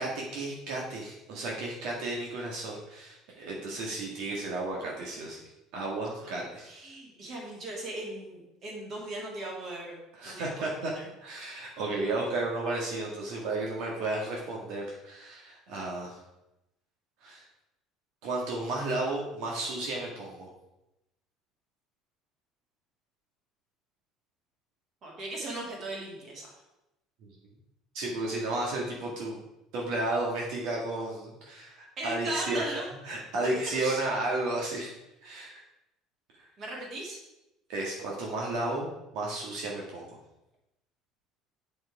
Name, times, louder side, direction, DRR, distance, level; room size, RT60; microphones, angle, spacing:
voice 1, 0.0-5.4 5.7-6.7 10.2-10.9 11.2-16.2 17.2-17.4 18.2-20.5 27.9-29.4 29.7-32.7 33.0-34.9 35.2-35.6 37.7-40.2, right 2 dB, 60° right, -2 dB, 1.9 m, -33 dB
voice 2, 6.2-10.0 10.2-11.1 25.0-26.6 32.0-32.9 33.7-34.0 36.6-37.2, right 2 dB, 35° right, -1 dB, 2.5 m, -38 dB
8.6 x 6.2 x 4.9 m, 0.92 s
cardioid pair, 165°, 0 cm